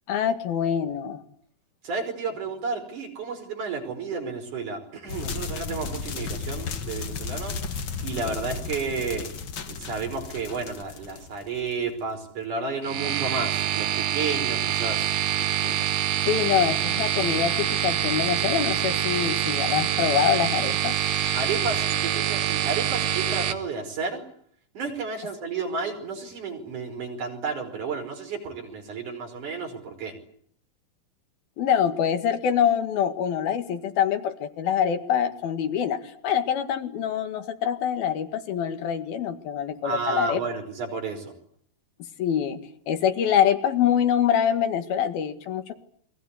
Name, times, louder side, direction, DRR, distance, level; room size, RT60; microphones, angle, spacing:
voice 1, 0.1-1.2 15.6-15.8 16.3-21.0 31.6-40.4 42.2-42.6 42.9-45.7, left 9 dB, 80° left, 8 dB, 3.8 m, -25 dB
voice 2, 1.8-7.6 8.0-9.3 9.7-15.1 21.3-24.2 24.7-30.1 39.8-41.3, right 4 dB, 55° right, 5 dB, 6.4 m, -32 dB
sound 1, 5.1-11.9, left 5 dB, 45° left, 1.8 m, -34 dB
sound 2, 12.8-23.5, right 10 dB, 75° right, 3.5 m, -25 dB
29.0 x 22.5 x 8.3 m, 0.63 s
omnidirectional pair, 4.3 m